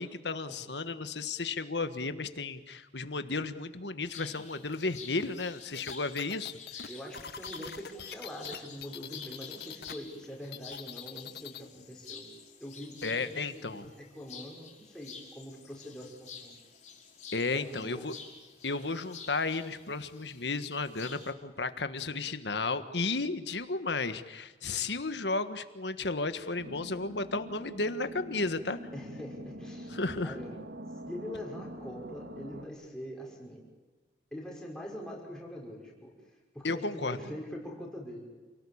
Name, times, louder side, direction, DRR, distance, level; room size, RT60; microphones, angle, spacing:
voice 1, 0.0-6.9 13.0-13.9 17.3-18.1 18.6-28.8 29.9-30.4 36.6-37.2, left 3 dB, 80° left, 10 dB, 1.5 m, -33 dB
sound 1, 4.1-21.3, left 6 dB, 40° left, 4.8 m, -49 dB
sound 2, 5.7-9.9 10.2-11.7, left 7 dB, 60° left, 0.9 m, -43 dB
voice 2, 6.9-12.3 12.6-16.6 17.5-18.1 28.9-30.6 31.1-33.7 34.3-36.1 36.5-38.3, equal, 5° left, -2 dB, 5.7 m, -43 dB
sound 3, 26.6-32.7, equal, 90° right, 2.0 m, -45 dB
28.5 x 18.5 x 8.7 m, 1.2 s
head